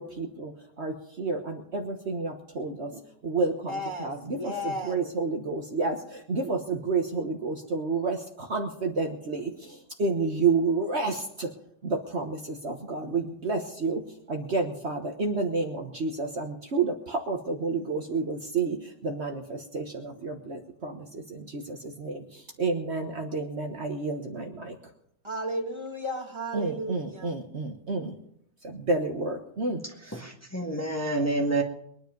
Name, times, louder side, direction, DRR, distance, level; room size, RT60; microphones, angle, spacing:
voice 1, 0.0-11.5 11.8-24.8 26.5-28.1 28.6-29.8, right 3 dB, 50° right, 3 dB, 1.5 m, -30 dB
voice 2, 3.7-5.0 25.2-27.3, equal, 20° right, 2 dB, 2.0 m, -34 dB
voice 3, 30.0-31.6, right 2 dB, 10° left, 1 dB, 1.7 m, -28 dB
22.0 x 10.0 x 5.3 m, 0.71 s
omnidirectional pair, 1.5 m